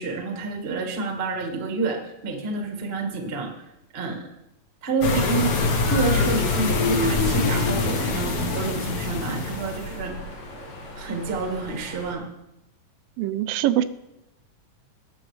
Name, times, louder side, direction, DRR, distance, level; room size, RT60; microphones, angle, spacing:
voice 1, 0.0-4.2 4.8-5.5 5.7-10.1 10.9-12.2, right 3 dB, 55° right, 1 dB, 0.6 m, -29 dB
sound 1, 5.0-10.0, left 3 dB, 60° left, 1.8 m, -24 dB
sound 2, 5.3-12.1, equal, 80° left, 3.9 m, -37 dB
voice 2, 13.2-13.8, right 13 dB, 85° right, 12 dB, 2.3 m, -23 dB
19.5 x 6.9 x 3.2 m, 0.89 s
omnidirectional pair, 3.9 m